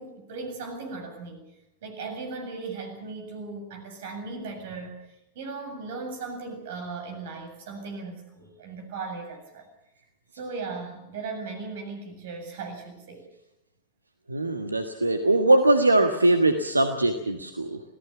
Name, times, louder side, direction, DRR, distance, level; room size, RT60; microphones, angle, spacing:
voice 1, 0.0-1.4 1.8-9.7 10.3-13.2, right 4 dB, 55° right, 5 dB, 7.5 m, -37 dB
voice 2, 14.3-17.8, right 2 dB, 80° right, 7 dB, 1.4 m, -21 dB
26.5 x 18.0 x 6.9 m, 0.89 s
figure-of-eight pair, 90°, 0 cm